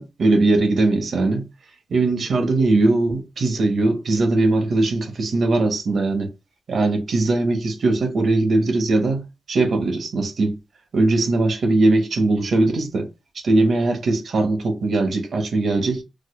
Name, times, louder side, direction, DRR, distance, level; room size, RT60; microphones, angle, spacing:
voice 1, 0.0-1.5 1.9-6.3 6.7-10.6 10.9-13.1 13.3-16.0, right 2 dB, 70° right, 0.9 m, -20 dB
4.7 x 2.1 x 2.3 m
cardioid pair, 70°, 0 cm